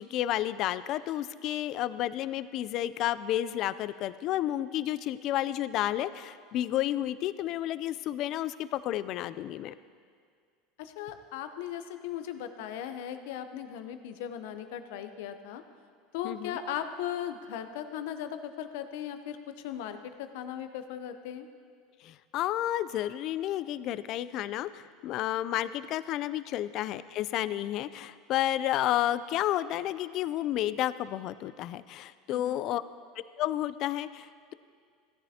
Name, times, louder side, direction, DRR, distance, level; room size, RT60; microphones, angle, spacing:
voice 1, 0.0-9.7 16.2-16.6 22.0-32.8 33.4-34.5, left 13 dB, 55° left, 15 dB, 0.4 m, -31 dB
voice 2, 10.8-15.6 16.1-21.5 32.3-32.6, left 10 dB, 75° left, 9 dB, 0.7 m, -38 dB
16.5 x 10.0 x 2.8 m, 2.1 s
supercardioid pair, 110°, 0 cm